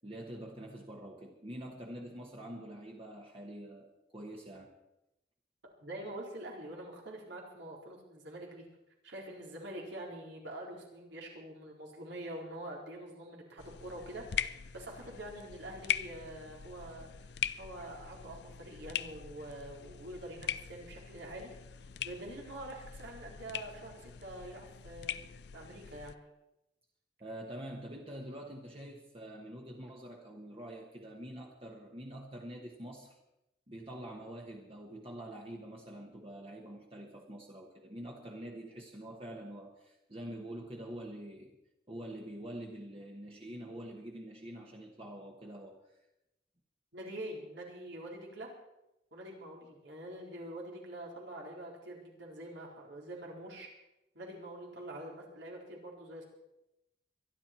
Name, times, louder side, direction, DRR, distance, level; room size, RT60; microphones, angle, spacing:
voice 1, 0.0-4.7 27.2-33.2 33.7-41.6 41.9-46.0, right 1 dB, 30° right, 0 dB, 1.4 m, -46 dB
voice 2, 5.8-8.7 9.0-21.5 22.0-25.2 25.5-26.2 46.9-48.5 49.1-53.7 54.1-56.2, right 1 dB, 80° right, -2 dB, 4.2 m, -45 dB
sound 1, 13.6-26.2, left 9 dB, 65° left, 0.5 m, -41 dB
23.5 x 11.0 x 4.5 m, 0.90 s
head